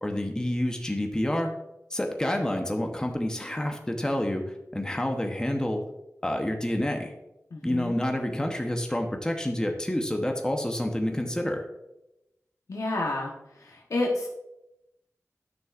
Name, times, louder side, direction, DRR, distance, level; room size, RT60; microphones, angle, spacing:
voice 1, 0.0-1.5 1.9-4.4 4.7-5.8 6.2-7.1 7.6-11.6, left 1 dB, 15° left, 3 dB, 0.9 m, -28 dB
voice 2, 7.5-8.0 12.7-13.3 13.6-14.3, left 2 dB, 85° left, -2 dB, 1.1 m, -29 dB
10.5 x 6.2 x 2.5 m, 0.89 s
wide cardioid pair, 80°, 6 cm